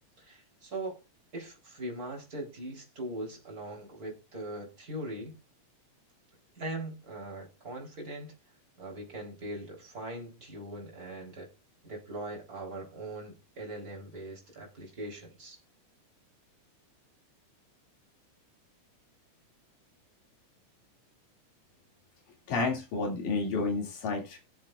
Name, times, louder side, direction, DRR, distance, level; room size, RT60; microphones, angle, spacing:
voice 1, 0.2-1.0 1.3-5.3 6.6-8.3 8.8-11.5 11.8-15.6, right 1 dB, 25° right, 0 dB, 3.8 m, -40 dB
voice 2, 22.5-24.4, left 3 dB, 85° left, 0 dB, 4.1 m, -30 dB
21.0 x 7.3 x 2.4 m, 0.26 s
omnidirectional pair, 3.6 m